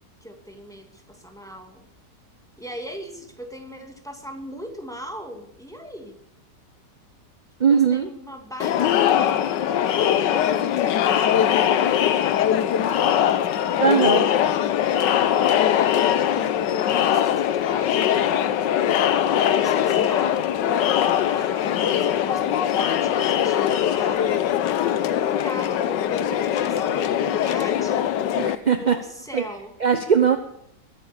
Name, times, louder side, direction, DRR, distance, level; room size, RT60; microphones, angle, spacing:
voice 1, 0.2-1.9 2.6-6.2 7.6-11.6 12.9-13.4 15.9-18.8 19.4-24.3 25.1-28.2 28.7-29.7, equal, ahead, 3 dB, 2.2 m, -39 dB
voice 2, 7.6-8.1 13.8-14.3 28.4-29.0 29.3-29.4 29.8-30.4, right 7 dB, 35° right, 8 dB, 0.7 m, -19 dB
Crowd, 8.6-28.6, left 10 dB, 90° left, 1.5 m, -21 dB
22.0 x 9.2 x 7.0 m, 0.74 s
omnidirectional pair, 1.9 m